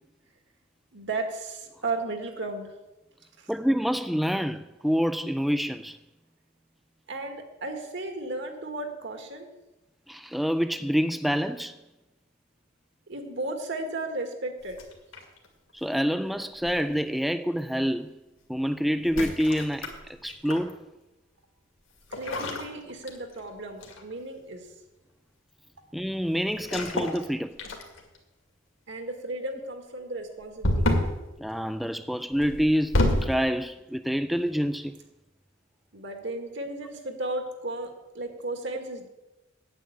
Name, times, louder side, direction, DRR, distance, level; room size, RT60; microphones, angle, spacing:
voice 1, 0.9-2.7 3.4-3.5 7.1-9.5 13.1-14.8 22.1-24.7 28.9-30.9 35.9-39.1, right 2 dB, 65° right, 2.0 m, -34 dB
voice 2, 3.5-6.0 10.1-11.8 15.7-18.1 18.5-19.9 20.2-20.8 25.9-27.6 31.4-34.9, equal, ahead, 0.3 m, -27 dB
sound 1, 14.7-15.5 16.6-17.0 19.0-20.7 22.1-23.5 23.8-24.1 26.6-27.2 27.6-28.2 30.6-31.2 32.4-33.4, left 1 dB, 75° left, 2.2 m, -28 dB
9.0 x 8.4 x 8.5 m
head